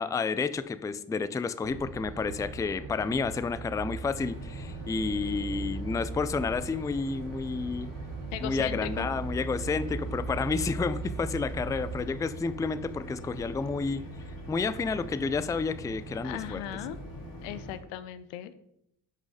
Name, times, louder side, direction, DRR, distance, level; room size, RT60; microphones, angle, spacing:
voice 1, 0.0-7.9 8.4-14.0 14.5-16.6, left 4 dB, 10° left, 14 dB, 0.3 m, -30 dB
sound 1, 1.6-12.1, right 4 dB, 80° right, 1.1 m, -39 dB
sound 2, 4.2-17.8, equal, 45° left, 2.5 m, -42 dB
voice 2, 8.3-9.1 16.2-17.0 17.4-18.5, left 11 dB, 90° left, 13 dB, 0.6 m, -37 dB
6.4 x 5.3 x 4.9 m, 0.79 s
hypercardioid pair, 45°, 48 cm